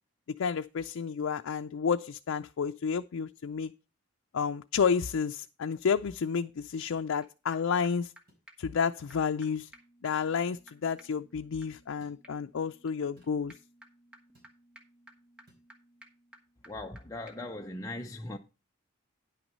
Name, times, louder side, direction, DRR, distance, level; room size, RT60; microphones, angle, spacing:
voice 1, 0.4-3.7 4.3-8.1 8.6-9.7 10.0-13.5, left 6 dB, 90° left, 0.4 m, -30 dB
sound 1, 6.9-7.0 8.3-8.5 9.6-9.8 10.8-11.0 12.0-12.2 13.2-13.4 14.3-14.6 15.5-15.7, right 1 dB, 50° right, 4.5 m, -64 dB
sound 2, 7.2-7.3 7.5-7.6 7.8-7.9 8.2-8.3 8.5-8.6 8.8-8.9 9.1-9.2 9.4-9.5 9.7-17.0 17.3-17.4, right 1 dB, 5° right, 1.4 m, -57 dB
voice 2, 16.7-18.4, left 1 dB, 15° left, 0.6 m, -39 dB
10.0 x 5.9 x 5.4 m
head